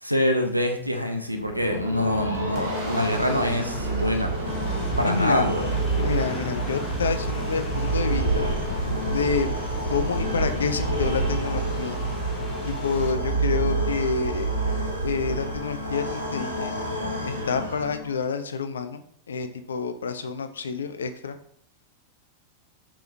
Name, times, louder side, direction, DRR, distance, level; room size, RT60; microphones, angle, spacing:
voice 1, 0.0-4.3 5.0-5.7, equal, 90° right, 5 dB, 0.4 m, -25 dB
sound 1, 1.3-18.3, right 2 dB, 90° left, 0.8 m, -28 dB
Boom, 1.8-11.1, right 2 dB, 30° right, 1.0 m, -40 dB
sound 2, 4.4-13.1, left 3 dB, 20° left, 0.7 m, -38 dB
voice 2, 5.1-5.4 6.0-8.5 9.1-9.5 9.9-12.0 12.7-14.5 15.0-16.7 17.2-19.0 19.3-21.4, left 5 dB, 70° left, 9 dB, 0.3 m, -28 dB
4.7 x 3.0 x 2.6 m, 0.63 s
figure-of-eight pair, 90°, 0 cm